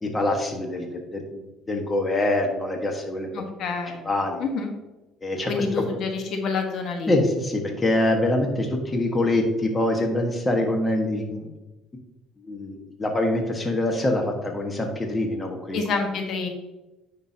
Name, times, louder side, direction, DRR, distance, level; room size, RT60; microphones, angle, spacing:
voice 1, 0.0-3.3 4.0-4.4 5.2-5.6 7.1-11.5 12.4-15.8, left 1 dB, 20° left, 3 dB, 1.4 m, -25 dB
voice 2, 3.3-4.0 4.4-4.7 5.5-7.1 15.7-16.5, left 4 dB, 55° left, 3 dB, 1.3 m, -27 dB
9.5 x 6.1 x 2.8 m, 1.0 s
cardioid pair, 105°, 0 cm